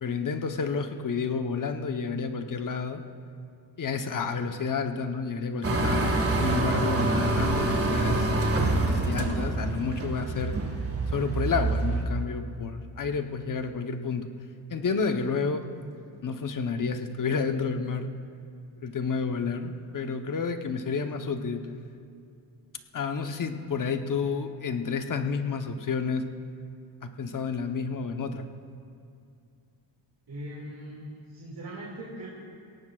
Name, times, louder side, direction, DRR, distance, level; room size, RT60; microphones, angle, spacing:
voice 1, 0.0-3.0 3.8-8.3 8.9-10.6 11.1-14.3 14.7-15.6 16.2-18.1 18.8-21.6 22.9-26.3 27.0-28.5, left 5 dB, 40° left, 6 dB, 1.0 m, -30 dB
sound 1, 5.6-12.0, right 2 dB, 30° right, 1.8 m, -26 dB
voice 2, 30.3-32.3, right 1 dB, 50° right, -4 dB, 2.4 m, -40 dB
22.5 x 17.5 x 2.4 m, 2.4 s
cardioid pair, 100°, 47 cm